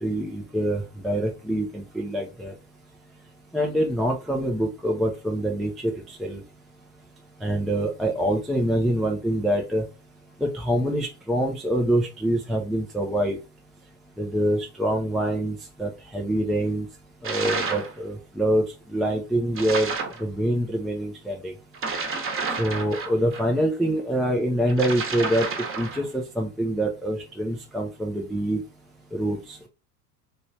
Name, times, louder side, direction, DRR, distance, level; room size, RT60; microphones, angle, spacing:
voice 1, 0.0-2.5 3.5-6.4 7.4-9.8 10.4-13.4 14.2-16.9 17.2-19.9 20.2-21.5 22.6-25.5 25.8-28.6 29.1-29.7, right 1 dB, ahead, 0 dB, 0.4 m, -25 dB
sound 1, 17.2-17.9 19.5-20.2 21.7-23.4 24.7-26.1, right 4 dB, 25° right, 0.9 m, -30 dB
3.1 x 3.0 x 2.7 m, 0.30 s
hypercardioid pair, 80°, 49 cm